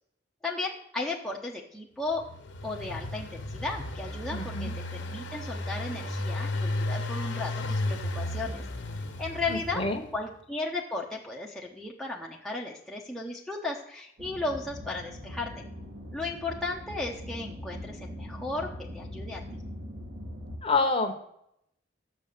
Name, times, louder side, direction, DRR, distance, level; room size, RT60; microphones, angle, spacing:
voice 1, 0.4-2.2 2.6-8.6 9.2-9.8 10.1-15.6 16.1-19.6, left 3 dB, ahead, -3 dB, 0.8 m, -35 dB
Engine, 2.1-10.2, left 1 dB, 75° left, 1.2 m, -34 dB
voice 2, 4.3-4.7 9.5-10.0 20.6-21.1, left 3 dB, 30° left, 6 dB, 1.1 m, -27 dB
sound 1, 14.2-20.6, equal, 70° right, 2.0 m, -41 dB
6.7 x 6.6 x 6.8 m, 0.75 s
head